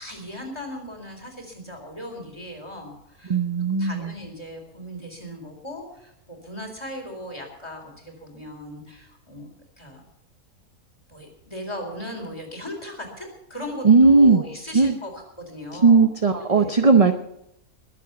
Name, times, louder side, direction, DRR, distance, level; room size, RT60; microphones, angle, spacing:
voice 1, 0.0-9.5 9.8-10.0 11.1-16.1 16.4-16.7, equal, 20° left, 2 dB, 4.1 m, -38 dB
voice 2, 3.3-4.1 13.8-14.4 14.7-15.0 15.8-17.1, right 4 dB, 30° right, 7 dB, 0.7 m, -16 dB
21.5 x 8.0 x 7.0 m, 0.79 s
omnidirectional pair, 1.6 m